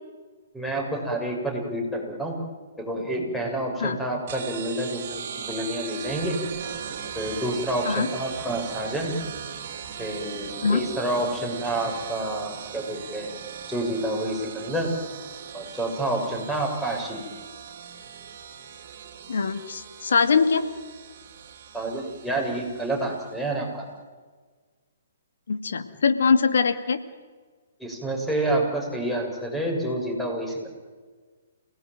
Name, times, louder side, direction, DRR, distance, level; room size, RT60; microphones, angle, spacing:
voice 1, 0.5-2.4 2.8-6.4 7.2-9.2 10.0-13.3 13.7-14.9 15.5-17.2 21.7-23.8 27.8-30.7, right 1 dB, 5° left, 1 dB, 6.8 m, -28 dB
sound 1, 4.3-23.4, right 8 dB, 50° right, 3.2 m, -39 dB
voice 2, 19.3-20.6 25.5-27.0, left 5 dB, 65° left, 9 dB, 2.2 m, -22 dB
28.5 x 18.5 x 9.3 m, 1.5 s
figure-of-eight pair, 125°, 0 cm